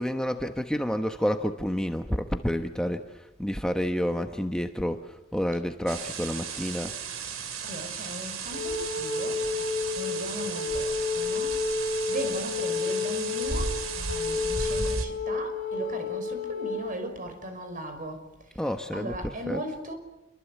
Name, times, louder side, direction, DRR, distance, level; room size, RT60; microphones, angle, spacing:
voice 1, 0.0-7.0 18.6-19.6, equal, 5° left, 1.1 m, -29 dB
sound 1, 5.9-15.0, right 5 dB, 85° right, 2.9 m, -35 dB
voice 2, 7.6-9.4 10.0-11.6 12.1-18.3 18.9-20.0, right 1 dB, 40° right, 5.6 m, -38 dB
Wind instrument woodwind instrument, 8.5-17.0, left 4 dB, 55° left, 6.7 m, -30 dB
27.0 x 25.0 x 8.5 m
head